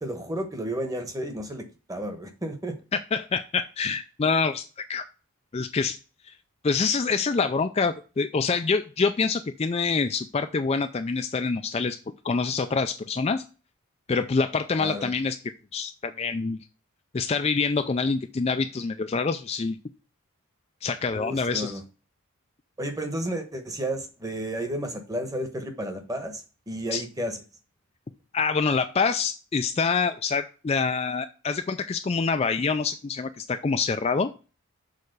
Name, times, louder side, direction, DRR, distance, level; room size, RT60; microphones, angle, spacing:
voice 1, 0.0-2.8 14.8-15.1 21.1-21.8 22.8-27.4, right 1 dB, 15° right, 6 dB, 1.0 m, -32 dB
voice 2, 2.9-5.0 5.5-6.0 6.3-6.4 6.6-12.0 12.2-13.4 14.1-15.4 15.7-16.6 17.1-19.8 20.8-21.7 26.9-27.0 28.3-34.3, left 4 dB, 30° left, 8 dB, 0.3 m, -26 dB
6.6 x 4.2 x 6.6 m, 0.34 s
head